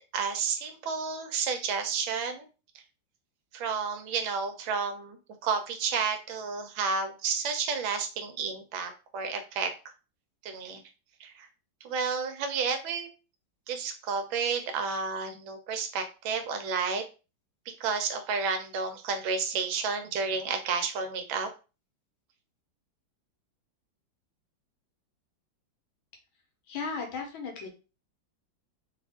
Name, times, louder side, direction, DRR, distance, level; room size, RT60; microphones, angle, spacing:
voice 1, 0.1-2.5 3.5-9.9 10.4-10.8 11.2-11.5 11.8-13.1 13.7-17.0 17.7-21.5, right 5 dB, 80° right, 7 dB, 1.5 m, -31 dB
voice 2, 26.7-27.7, left 5 dB, 85° left, 2 dB, 1.7 m, -35 dB
3.9 x 2.4 x 3.5 m, 0.32 s
omnidirectional pair, 2.2 m